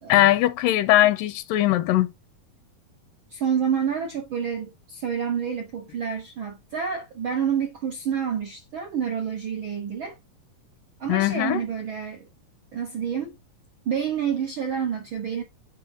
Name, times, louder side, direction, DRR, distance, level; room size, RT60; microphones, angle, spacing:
voice 1, 0.1-2.1 11.1-11.6, left 14 dB, 85° left, 2.1 m, -20 dB
voice 2, 3.3-10.2 11.0-12.3 12.7-13.4 13.8-15.4, right 7 dB, 85° right, 1.1 m, -28 dB
9.1 x 5.5 x 2.6 m
omnidirectional pair, 3.9 m